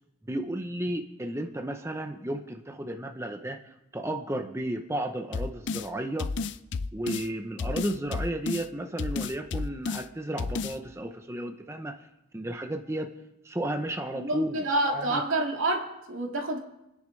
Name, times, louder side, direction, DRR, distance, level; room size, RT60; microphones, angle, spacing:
voice 1, 0.3-6.3 6.9-12.1 12.3-13.1 13.4-14.7 14.9-15.2, right 1 dB, 15° right, 5 dB, 0.7 m, -33 dB
sound 1, 5.3-5.9 6.2-7.3 7.6-8.7 9.0-10.0 10.4-10.8, left 4 dB, 55° left, 0.5 m, -31 dB
voice 2, 14.2-16.6, right 2 dB, 80° right, 1 dB, 2.2 m, -28 dB
27.0 x 10.0 x 3.2 m, 0.91 s
head